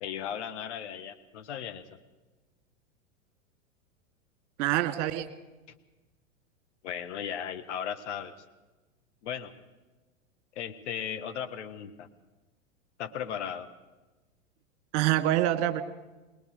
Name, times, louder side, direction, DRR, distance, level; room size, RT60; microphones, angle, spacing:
voice 1, 0.0-1.8 6.8-8.3 9.2-9.5 10.5-12.1 13.0-13.7, left 8 dB, 65° left, 8 dB, 1.6 m, -36 dB
voice 2, 4.6-5.3 14.9-15.8, right 13 dB, 50° right, 9 dB, 2.2 m, -25 dB
21.5 x 20.5 x 6.6 m, 1.2 s
hypercardioid pair, 95°, 38 cm